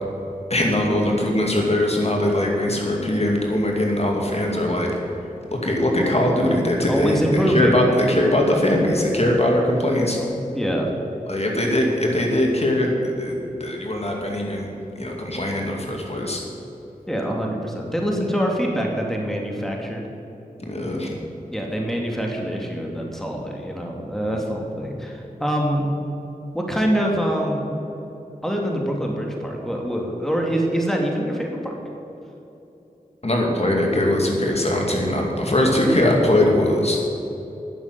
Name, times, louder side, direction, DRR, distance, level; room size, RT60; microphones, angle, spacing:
voice 1, 0.5-4.9 5.6-10.2 11.3-14.7 15.0-16.4 20.7-21.1 33.2-37.0, left 1 dB, 45° left, 0 dB, 2.4 m, -21 dB
voice 2, 6.9-7.7 10.5-10.9 17.1-20.0 21.5-25.9 26.5-27.7 28.4-31.7 35.4-35.6, equal, ahead, 0 dB, 2.4 m, -24 dB
11.0 x 7.2 x 9.6 m, 3.0 s
cardioid pair, 40°, 15 cm